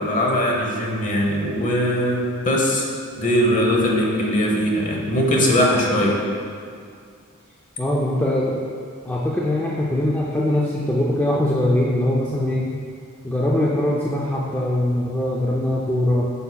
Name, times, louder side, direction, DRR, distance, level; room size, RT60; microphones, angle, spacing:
voice 1, 0.0-2.8 3.2-6.2, equal, 35° left, -1 dB, 0.9 m, -20 dB
voice 2, 7.8-8.6 9.0-12.7 13.2-16.3, left 1 dB, 10° left, -4 dB, 0.4 m, -22 dB
8.3 x 5.3 x 2.3 m, 2.2 s
head